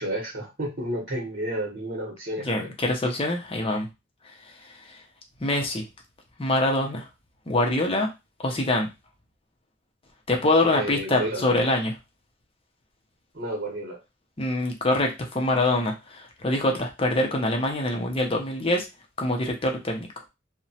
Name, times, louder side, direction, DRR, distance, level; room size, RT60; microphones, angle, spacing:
voice 1, 0.0-2.7 10.7-11.5 13.3-14.0, right 1 dB, 45° right, -3 dB, 0.9 m, -31 dB
voice 2, 2.4-3.9 4.2-5.0 5.4-5.8 6.4-7.1 7.5-8.1 8.4-8.9 10.3-11.9 14.4-18.9 19.2-20.1, left 2 dB, 30° left, 2 dB, 0.6 m, -25 dB
2.9 x 2.1 x 2.7 m, 0.24 s
head